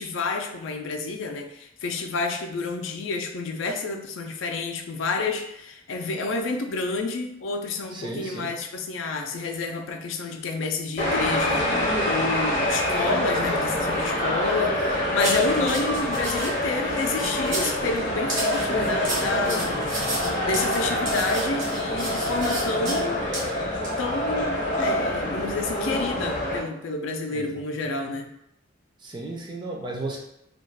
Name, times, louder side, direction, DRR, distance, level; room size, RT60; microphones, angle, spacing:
voice 1, 0.0-19.8 20.5-23.3 24.0-28.3, left 3 dB, 75° left, 4 dB, 0.4 m, -29 dB
voice 2, 7.9-8.6 27.3-27.5 27.7-27.8 29.0-30.2, right 2 dB, 25° right, -1 dB, 0.4 m, -34 dB
sound 1, 11.0-26.6, left 1 dB, 35° left, 0.6 m, -26 dB
sound 2, 15.2-16.5 17.0-17.8 18.3-23.0 23.3-23.5 23.8-24.0, right 2 dB, 70° right, 1.0 m, -32 dB
2.4 x 2.3 x 3.3 m, 0.80 s
head